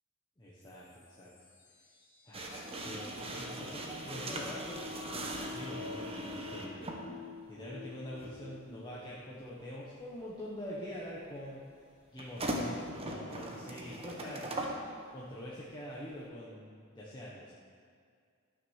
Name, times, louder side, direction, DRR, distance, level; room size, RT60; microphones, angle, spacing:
voice 1, 0.4-1.3 2.2-4.8 5.5-7.0 7.5-11.6 12.1-14.6 15.1-17.5, equal, 20° left, -7 dB, 1.2 m, -45 dB
sound 1, 0.6-8.7, left 4 dB, 50° left, 2.5 m, -52 dB
sound 2, 2.3-7.0 8.2-8.3 12.2-14.8, right 1 dB, 25° right, 1.2 m, -39 dB
12.5 x 6.4 x 6.5 m, 2.2 s
head